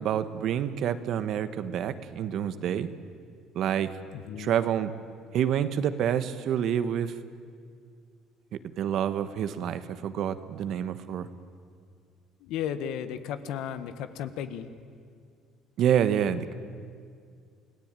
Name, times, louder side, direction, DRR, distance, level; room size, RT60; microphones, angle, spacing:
voice 1, 0.0-2.9 3.5-3.9 4.4-4.9 5.3-7.1 8.8-11.3 15.8-16.6, right 9 dB, 60° right, 12 dB, 1.3 m, -27 dB
voice 2, 4.1-4.5 12.4-14.7, left 9 dB, 75° left, 11 dB, 1.5 m, -34 dB
28.5 x 17.5 x 9.0 m, 2.2 s
cardioid pair, 105°, 0 cm